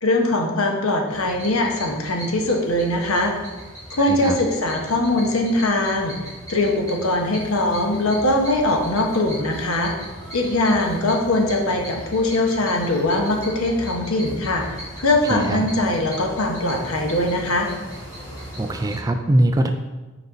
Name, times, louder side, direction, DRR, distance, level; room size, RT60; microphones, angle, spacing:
voice 1, 0.0-3.3 3.9-6.1 6.5-9.9 10.3-17.7, left 1 dB, 75° left, 2 dB, 1.0 m, -21 dB
sound 1, 1.1-19.0, equal, 15° left, 2.3 m, -38 dB
voice 2, 4.0-4.4 15.3-15.7 18.6-19.7, right 1 dB, 15° right, 6 dB, 0.3 m, -21 dB
6.0 x 5.2 x 4.0 m, 1.2 s
head